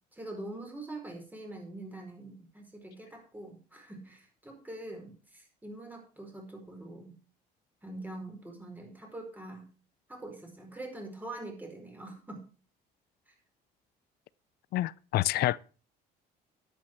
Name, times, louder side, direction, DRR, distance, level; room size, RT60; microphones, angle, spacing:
voice 1, 0.1-7.2 7.8-9.6 10.1-12.5 13.3-13.4, right 2 dB, 10° right, 4.7 m, -44 dB
voice 2, 14.7-15.6, left 15 dB, 70° left, 0.5 m, -28 dB
10.5 x 8.8 x 4.7 m
cardioid pair, 110°, 17 cm